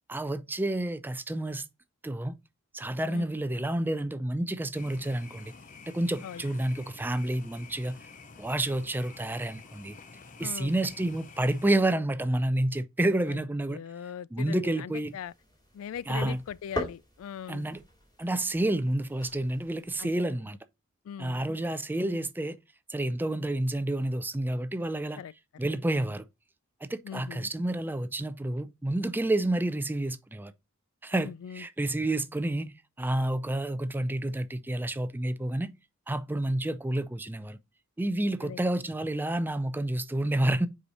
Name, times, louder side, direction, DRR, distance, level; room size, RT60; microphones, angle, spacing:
voice 1, 0.1-1.7 2.0-2.4 2.7-5.5 5.9-8.0 8.4-10.0 10.4-13.8 14.3-15.1 16.1-16.4 17.5-17.8 18.2-20.6 21.2-22.6 22.9-25.2 25.6-26.2 26.8-30.5 31.0-35.7 36.1-37.6 38.0-40.7, right 1 dB, 10° right, 0.4 m, -29 dB
sound 1, 4.7-11.7, left 4 dB, 35° left, 0.6 m, -49 dB
voice 2, 10.4-10.7 13.3-13.4 13.7-15.3 15.7-17.7 20.0-20.2 21.0-21.7 22.1-22.3 25.2-25.3 27.0-27.5 31.2-31.7 38.4-38.7, left 8 dB, 70° left, 0.3 m, -41 dB
sound 2, 15.1-20.2, left 1 dB, 20° left, 2.5 m, -41 dB
5.3 x 4.9 x 4.1 m
head